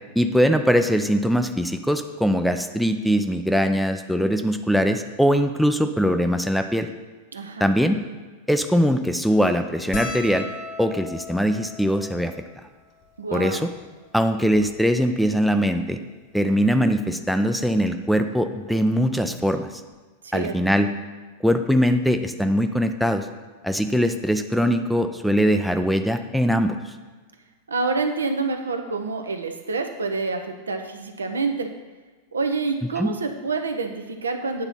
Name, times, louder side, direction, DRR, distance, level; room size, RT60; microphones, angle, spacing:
voice 1, 0.2-6.9 7.6-8.0 8.5-10.5 10.8-12.3 13.3-13.7 14.1-16.0 16.3-19.7 20.3-20.9 21.4-23.3 23.6-26.7 33.0-33.1, equal, ahead, 7 dB, 0.5 m, -21 dB
voice 2, 7.3-7.7 13.2-13.7 20.2-20.6 27.7-31.7 32.3-34.7, right 4 dB, 75° right, 6 dB, 0.7 m, -27 dB
sound 1, 9.9-14.5 15.3-15.4 15.6-15.8 17.0-17.3 18.7-18.8 19.0-19.2, left 3 dB, 35° left, 1.2 m, -39 dB
8.9 x 4.0 x 5.5 m, 1.3 s
figure-of-eight pair, 90°, 0 cm